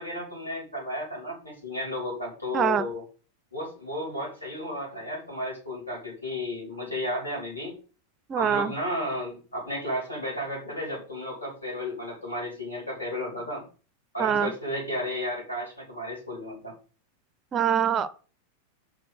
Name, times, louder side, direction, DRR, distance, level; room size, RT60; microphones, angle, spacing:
voice 1, 0.0-3.0 3.5-7.7 8.4-13.6 14.1-16.7, left 1 dB, 85° left, -2 dB, 3.9 m, -33 dB
voice 2, 8.3-8.7 14.2-14.5 17.5-18.1, right 8 dB, 25° right, 14 dB, 0.5 m, -24 dB
5.1 x 4.3 x 5.3 m, 0.37 s
figure-of-eight pair, 90°, 0 cm